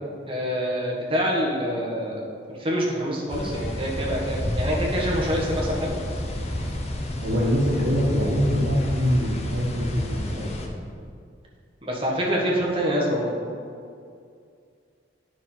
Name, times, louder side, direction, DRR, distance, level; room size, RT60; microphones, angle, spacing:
voice 1, 0.3-2.2 2.5-6.0 11.8-13.4, equal, 30° right, -3 dB, 1.4 m, -26 dB
sound 1, 3.3-10.7, left 1 dB, 35° left, 0.8 m, -30 dB
voice 2, 7.2-10.7, equal, 75° right, -9 dB, 1.6 m, -24 dB
9.3 x 5.9 x 4.5 m, 2.3 s
head